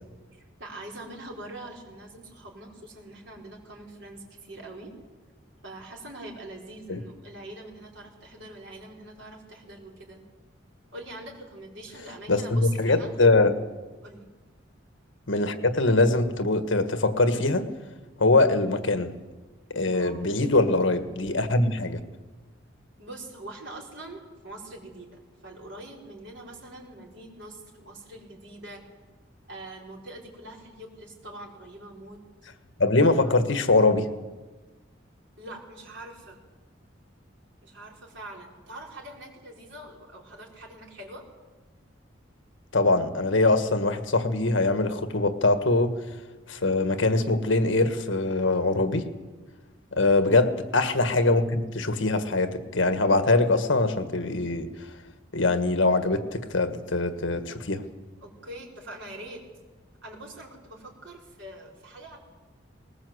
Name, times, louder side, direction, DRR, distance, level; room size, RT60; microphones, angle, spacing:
voice 1, 0.3-4.9 5.6-10.2 10.9-13.1 14.0-14.3 19.9-20.3 23.0-28.8 29.5-32.2 35.4-36.4 37.6-41.3 50.1-50.4 58.2-59.4 60.0-62.2, right 1 dB, 65° right, -1 dB, 5.1 m, -43 dB
voice 2, 12.3-13.6 15.3-17.7 18.2-19.1 19.7-22.0 32.8-34.1 42.7-46.0 46.5-49.1 49.9-54.7 55.3-57.8, left 2 dB, 75° left, 9 dB, 1.6 m, -23 dB
20.0 x 20.0 x 8.0 m, 1.3 s
head